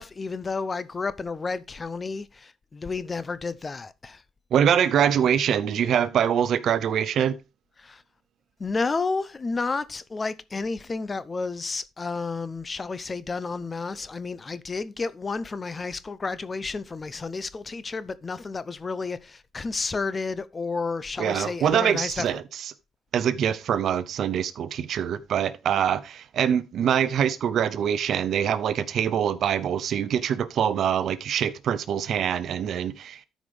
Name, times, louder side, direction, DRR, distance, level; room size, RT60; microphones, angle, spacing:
voice 1, 0.0-4.2 7.8-8.0 8.6-22.4, left 4 dB, 30° left, 0.6 m, -31 dB
voice 2, 4.5-7.4 21.2-22.4 23.1-33.2, right 9 dB, 70° right, 0.6 m, -24 dB
13.0 x 5.1 x 3.4 m
cardioid pair, 90°, 0 cm